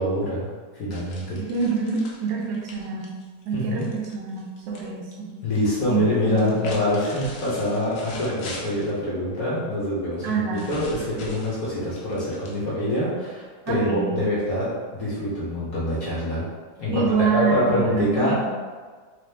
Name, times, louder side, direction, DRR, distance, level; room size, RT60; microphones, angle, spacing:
voice 1, 0.0-1.4 3.5-3.9 5.4-16.5 16.8-18.5, left 1 dB, 55° left, -8 dB, 1.3 m, -25 dB
sound 1, 0.9-4.9 5.1-5.7 6.3-9.0 10.2-12.9, left 2 dB, 85° left, 1.5 m, -42 dB
voice 2, 1.5-3.1 3.4-5.3 5.9-6.6 10.2-10.7 13.7-14.2 16.9-18.5, right 5 dB, 80° right, -2 dB, 1.3 m, -26 dB
4.0 x 2.8 x 3.3 m, 1.5 s
omnidirectional pair, 2.0 m